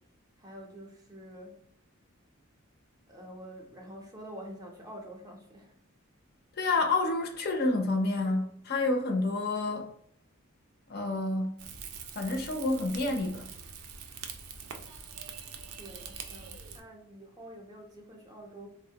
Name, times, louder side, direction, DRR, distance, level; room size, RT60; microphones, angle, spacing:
voice 1, 0.4-1.6 3.1-5.7 15.8-18.7, right 1 dB, 15° right, 0.5 m, -47 dB
voice 2, 6.6-9.9 10.9-11.5 12.2-13.4, left 2 dB, 45° left, 0.5 m, -29 dB
Rain / Fire, 11.6-16.8, right 6 dB, 80° right, 0.4 m, -44 dB
3.4 x 2.1 x 2.7 m
head